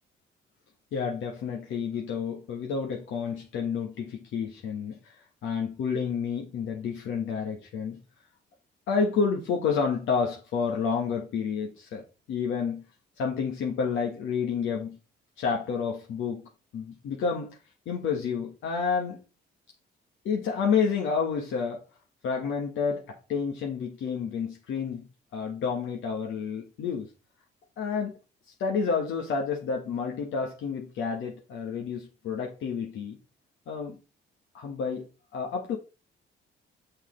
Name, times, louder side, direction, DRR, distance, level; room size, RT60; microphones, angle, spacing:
voice 1, 0.9-5.1 5.4-8.0 8.9-12.8 13.2-15.0 15.4-17.6 17.8-19.2 20.2-21.8 22.2-27.1 27.8-28.2 28.6-33.2 33.7-34.0 34.5-35.1 35.3-35.8, left 6 dB, 80° left, 1.5 m, -30 dB
6.5 x 5.7 x 3.2 m
cardioid pair, 90°, 20 cm